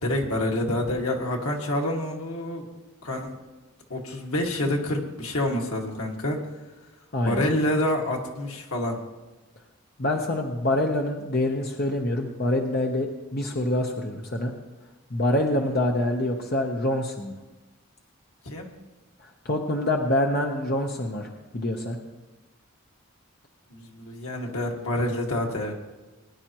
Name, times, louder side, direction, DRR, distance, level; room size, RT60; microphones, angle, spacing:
voice 1, 0.0-2.6 3.0-3.3 3.9-6.4 7.2-9.0 18.4-18.7 23.7-25.7, left 1 dB, 85° left, 0 dB, 2.0 m, -27 dB
voice 2, 7.1-7.4 10.0-14.5 15.1-17.4 19.4-22.0, left 1 dB, 45° left, 2 dB, 0.9 m, -26 dB
21.0 x 10.5 x 3.0 m, 1.1 s
head